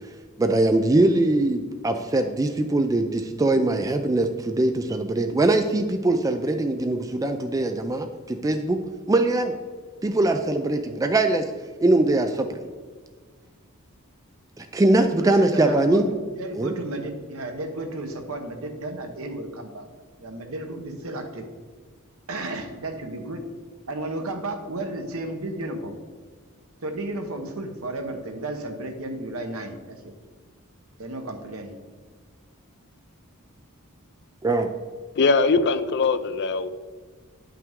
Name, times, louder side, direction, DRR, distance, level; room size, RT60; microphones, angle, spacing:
voice 1, 0.4-8.8 9.1-9.5 10.0-11.5 11.8-12.6 14.6-16.1 16.6-16.7 34.4-34.7, right 2 dB, 15° right, 7 dB, 0.3 m, -22 dB
voice 2, 15.2-19.8 20.2-21.4 22.3-23.4 23.9-26.0 26.8-30.1 31.0-31.7, right 2 dB, 70° right, 5 dB, 1.0 m, -33 dB
voice 3, 35.2-36.7, left 4 dB, 50° left, 12 dB, 0.4 m, -21 dB
9.2 x 5.8 x 3.6 m, 1.5 s
head